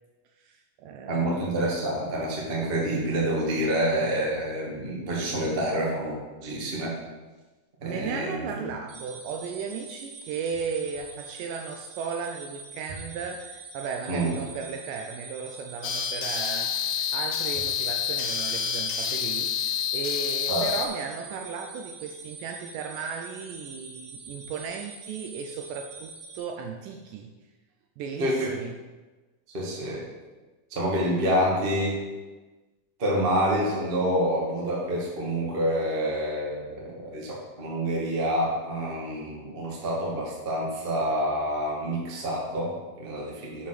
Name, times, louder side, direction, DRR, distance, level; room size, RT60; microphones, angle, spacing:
voice 1, 0.4-1.5 7.8-27.3 28.0-28.8, right 6 dB, 80° right, 3 dB, 1.9 m, -36 dB
voice 2, 1.0-6.9 7.8-8.7 14.1-14.3 20.5-20.7 28.2-28.5 29.5-30.0 30.7-32.0 33.0-43.7, equal, 50° right, -4 dB, 0.6 m, -27 dB
sound 1, 8.9-26.4, right 3 dB, 65° right, 2.6 m, -44 dB
sound 2, 15.8-20.9, left 8 dB, 85° left, 1.9 m, -28 dB
7.1 x 5.0 x 5.9 m, 1.2 s
omnidirectional pair, 4.2 m